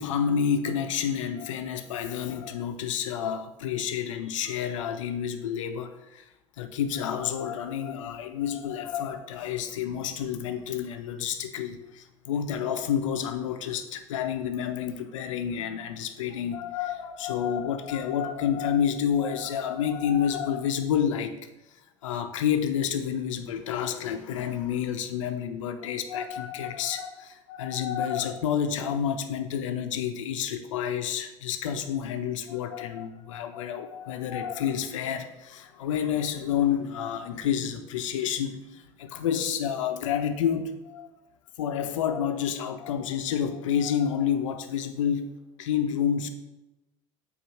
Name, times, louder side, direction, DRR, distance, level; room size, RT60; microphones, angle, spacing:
voice 1, 0.0-6.2 6.6-21.4 22.0-41.1 41.6-45.3 45.6-46.3, left 8 dB, 65° left, 7 dB, 0.7 m, -29 dB
8.1 x 2.7 x 5.5 m, 0.96 s
figure-of-eight pair, 70°, 17 cm